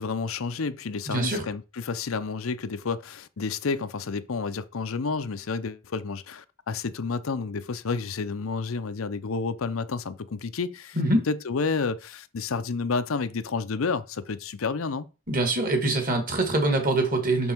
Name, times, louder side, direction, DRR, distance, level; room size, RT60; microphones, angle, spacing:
voice 1, 0.0-11.0 11.3-15.1, left 4 dB, 85° left, 0.6 m, -30 dB
voice 2, 1.1-1.4 11.0-11.2 15.3-17.5, right 2 dB, 40° right, 1.9 m, -24 dB
6.3 x 5.4 x 4.5 m
head